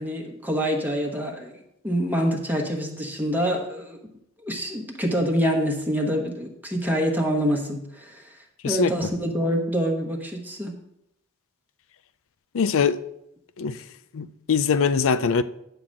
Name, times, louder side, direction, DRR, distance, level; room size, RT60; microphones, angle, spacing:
voice 1, 0.0-4.0 4.4-8.3 8.6-10.7, equal, 10° right, 1.2 m, -26 dB
voice 2, 12.5-13.0 13.6-13.7 14.1-15.4, left 5 dB, 65° left, 0.5 m, -22 dB
10.0 x 3.9 x 7.5 m
head